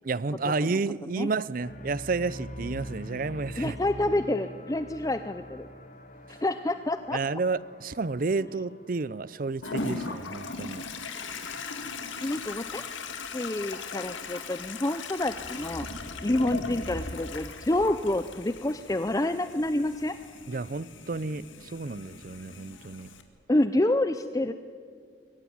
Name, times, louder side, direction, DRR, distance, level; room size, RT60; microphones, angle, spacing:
voice 1, 0.0-3.8 7.1-10.8 20.5-23.1, right 3 dB, 45° right, 0.5 m, -31 dB
sound 1, 1.6-9.8, left 1 dB, 40° left, 1.4 m, -44 dB
voice 2, 3.6-5.7 6.3-7.2 12.2-12.9 13.3-20.2 23.5-24.5, left 1 dB, 20° left, 0.5 m, -28 dB
Toilet flush, 9.6-23.2, left 3 dB, 85° left, 2.1 m, -38 dB
23.5 x 15.5 x 9.9 m
head